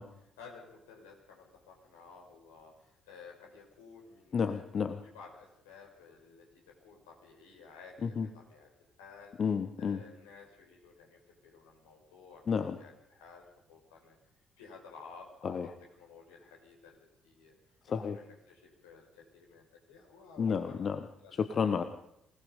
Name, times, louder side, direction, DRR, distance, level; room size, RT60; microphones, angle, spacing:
voice 1, 0.0-4.7 5.0-6.5 6.8-8.7 9.0-9.5 9.8-12.4 12.7-14.2 14.6-15.6 16.0-17.6 17.9-20.9 21.2-21.6, left 5 dB, 80° left, 0 dB, 5.7 m, -54 dB
voice 2, 4.3-5.0 8.0-8.3 9.4-10.0 12.5-12.8 15.4-15.7 17.9-18.2 20.4-21.0 21.4-21.8, left 6 dB, 50° left, 10 dB, 1.1 m, -31 dB
26.0 x 19.0 x 5.3 m, 0.81 s
figure-of-eight pair, 45°, 0 cm